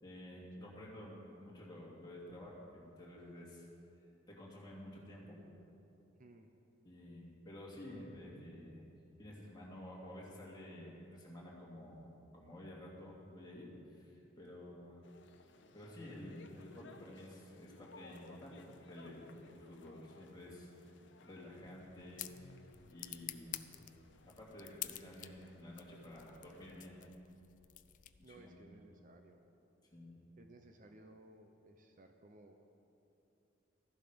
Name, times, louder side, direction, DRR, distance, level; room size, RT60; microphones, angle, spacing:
voice 1, 0.0-3.6 4.3-5.4 6.8-8.8 9.2-12.1 12.3-15.0 15.7-19.2 19.5-20.7 21.2-22.4 22.9-23.7 24.2-27.0 28.2-28.6 29.9-30.2, left 1 dB, 20° left, -5 dB, 2.6 m, -51 dB
voice 2, 6.2-6.5 28.2-29.4 30.4-32.7, right 1 dB, 40° right, 5 dB, 0.7 m, -59 dB
sound 1, 15.0-27.1, left 3 dB, 65° left, 0.8 m, -62 dB
sound 2, 21.6-28.5, left 13 dB, 40° left, 0.4 m, -50 dB
14.0 x 11.5 x 5.2 m, 2.8 s
head